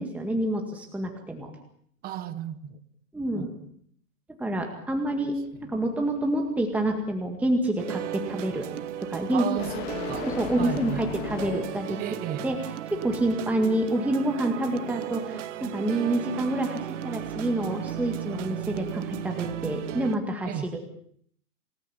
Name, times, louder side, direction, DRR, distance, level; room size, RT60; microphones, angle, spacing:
voice 1, 0.0-1.5 3.1-3.5 4.4-8.7 9.0-9.4 10.2-12.0 12.4-12.6 12.9-20.5, right 1 dB, 5° right, 2.0 m, -28 dB
voice 2, 2.0-2.8 3.3-3.7 5.2-5.3 5.6-5.7 9.3-10.3 10.6-11.1 12.0-12.5 20.4-20.7, right 11 dB, 20° right, 1.2 m, -34 dB
sound 1, 5.0-12.0, left 11 dB, 40° left, 2.1 m, -40 dB
sound 2, 7.8-20.1, right 12 dB, 50° right, 1.5 m, -36 dB
29.0 x 18.5 x 7.3 m
hypercardioid pair, 150°, 47 cm